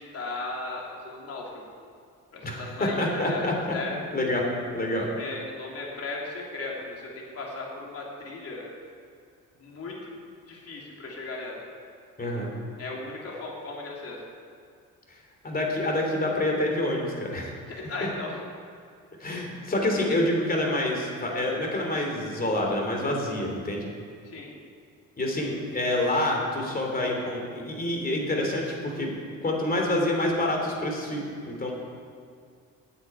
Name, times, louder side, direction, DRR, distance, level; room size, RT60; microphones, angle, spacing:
voice 1, 0.0-1.6 2.3-3.5 3.7-4.0 5.2-8.7 9.6-10.2 10.5-11.6 12.8-14.2 17.7-18.4 24.2-24.5, left 3 dB, 50° left, -3 dB, 3.3 m, -36 dB
voice 2, 2.4-3.5 4.1-4.4 4.7-5.1 12.2-12.5 15.1-15.2 15.4-17.5 19.2-23.9 25.2-29.1 29.4-31.7, left 1 dB, 30° left, 0 dB, 3.3 m, -27 dB
9.6 x 8.7 x 8.8 m, 2.2 s
cardioid pair, 90°, 30 cm